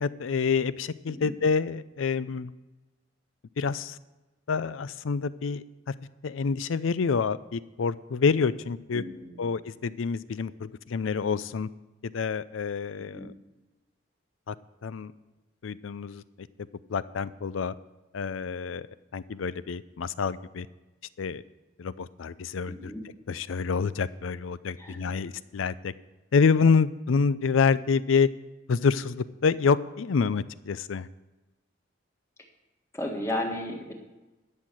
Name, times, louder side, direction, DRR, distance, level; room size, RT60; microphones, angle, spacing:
voice 1, 0.0-2.5 3.6-4.0 4.5-5.9 6.2-9.0 9.4-11.7 12.0-13.3 14.5-14.6 14.8-15.1 15.6-16.5 16.9-17.7 18.1-18.9 19.1-20.7 21.2-21.4 21.8-22.9 23.3-25.9 26.3-28.3 28.7-31.1, left 5 dB, 80° left, 17 dB, 0.5 m, -27 dB
voice 2, 8.9-9.4 13.0-13.3 22.7-23.0 24.8-25.0 32.9-33.9, left 1 dB, 15° left, 2 dB, 1.5 m, -34 dB
12.0 x 6.5 x 7.7 m, 1.1 s
head